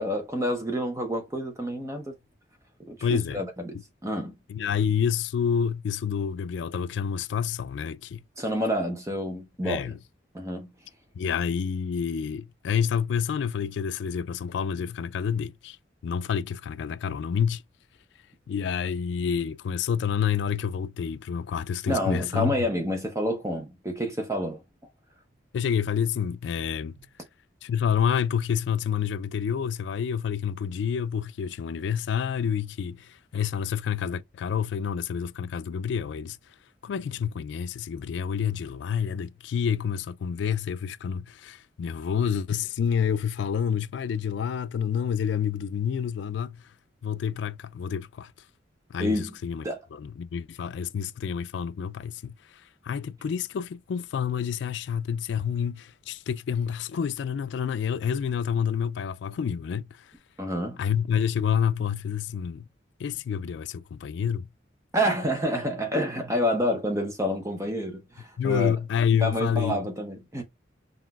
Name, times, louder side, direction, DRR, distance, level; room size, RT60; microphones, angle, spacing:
voice 1, 0.0-2.1 2.9-4.3 8.4-9.9 10.3-10.7 21.9-24.6 49.0-49.3 49.6-49.8 60.4-60.8 64.9-68.7 69.2-70.4, equal, 15° right, 0.6 m, -28 dB
voice 2, 3.0-3.4 4.5-8.2 9.6-10.0 11.2-15.8 16.0-17.6 18.5-22.6 25.5-27.0 27.6-36.4 36.8-46.6 47.0-48.3 48.9-49.7 49.9-60.1 60.8-62.7 63.0-64.5 68.4-69.8, left 7 dB, 75° left, 0.3 m, -28 dB
5.7 x 2.4 x 2.4 m
head